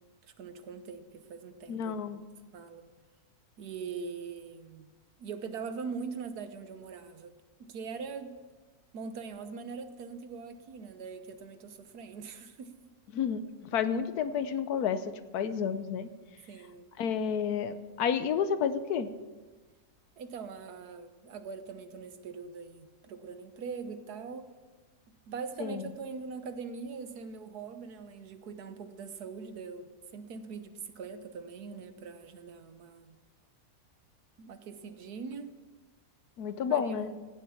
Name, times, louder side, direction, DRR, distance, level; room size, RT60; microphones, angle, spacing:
voice 1, 0.4-1.9 2.5-2.8 3.6-4.9 5.2-7.3 7.7-8.3 8.9-12.9 16.5-16.9 20.2-24.5 25.3-33.2 34.4-35.5 36.7-37.2, right 5 dB, 90° right, 10 dB, 1.5 m, -42 dB
voice 2, 1.7-2.2 13.1-16.1 17.0-19.1 25.6-25.8 36.4-37.1, left 7 dB, 85° left, 12 dB, 1.3 m, -30 dB
16.0 x 7.4 x 7.2 m, 1.3 s
omnidirectional pair, 1.6 m